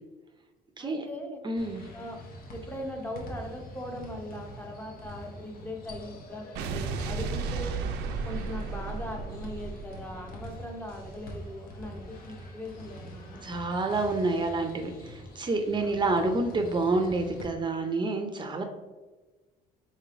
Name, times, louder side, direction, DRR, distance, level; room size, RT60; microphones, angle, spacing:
voice 1, 0.8-1.4 1.9-2.2 2.5-7.7 8.2-13.6 15.8-16.1, left 1 dB, 10° left, 2 dB, 0.7 m, -40 dB
voice 2, 1.4-1.8 13.4-18.6, right 2 dB, 25° right, 5 dB, 0.5 m, -28 dB
sound 1, 1.6-17.4, equal, 60° left, 0.8 m, -45 dB
Explosion, 6.6-10.9, right 5 dB, 85° right, 0.4 m, -34 dB
4.1 x 3.0 x 2.5 m, 1.2 s
cardioid pair, 110°, 17 cm